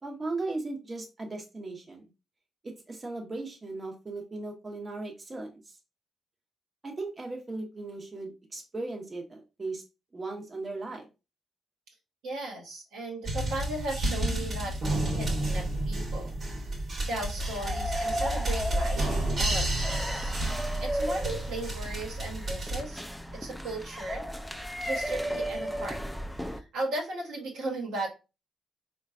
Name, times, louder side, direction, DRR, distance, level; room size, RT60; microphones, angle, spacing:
voice 1, 0.0-2.1 2.6-5.8 6.8-9.8 10.1-11.1, right 3 dB, 35° right, 1 dB, 0.8 m, -37 dB
voice 2, 12.2-16.3 17.1-20.3 20.8-23.0 23.3-24.3 24.8-26.0 26.5-28.1, right 2 dB, 80° right, -1 dB, 1.1 m, -36 dB
sound 1, 13.2-22.8, right 1 dB, 55° right, 1.2 m, -31 dB
sound 2, 17.4-26.6, equal, ahead, 0.4 m, -35 dB
3.8 x 2.3 x 2.4 m, 0.29 s
supercardioid pair, 55°, 0 cm